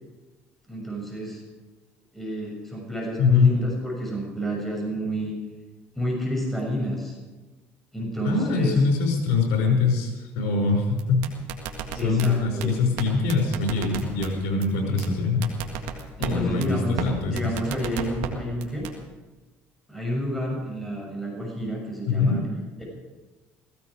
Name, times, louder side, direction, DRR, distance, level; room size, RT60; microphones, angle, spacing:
voice 1, 0.7-1.4 2.1-5.3 5.9-7.2 7.9-8.7 12.0-12.7 16.2-18.9 19.9-22.4 22.8-22.9, equal, 5° left, -2 dB, 6.7 m, -29 dB
voice 2, 3.2-3.6 8.2-11.3 11.9-15.5 16.2-17.5 22.1-22.5, left 4 dB, 85° left, 1 dB, 5.6 m, -23 dB
sound 1, 11.0-12.3 12.6-12.7 13.0-13.1 13.3-14.3 14.6-14.7 15.0-15.1 15.4-16.3 16.6-16.7 17.0-17.1 17.4-18.3 18.6-18.9, right 11 dB, 85° right, 1.9 m, -32 dB
16.5 x 16.5 x 5.0 m, 1.2 s
cardioid pair, 100°, 6 cm